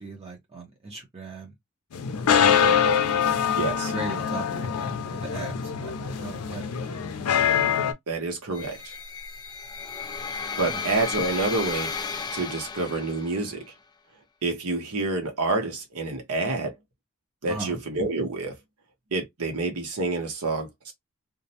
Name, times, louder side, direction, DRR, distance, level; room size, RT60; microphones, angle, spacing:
voice 1, 0.0-1.5 2.2-2.8 3.1-3.3 3.9-6.7 10.7-10.8 17.5-17.8, right 3 dB, 30° right, 0.7 m, -38 dB
sound 1, 1.9-7.9, left 7 dB, 85° left, 0.5 m, -24 dB
voice 2, 3.6-3.9 8.1-8.9 10.6-11.9 12.3-13.6 14.4-16.7 17.4-18.6 19.1-20.9, right 3 dB, 85° right, 1.0 m, -28 dB
sound 2, 8.5-13.6, left 5 dB, 20° left, 0.3 m, -34 dB
2.5 x 2.1 x 2.7 m
head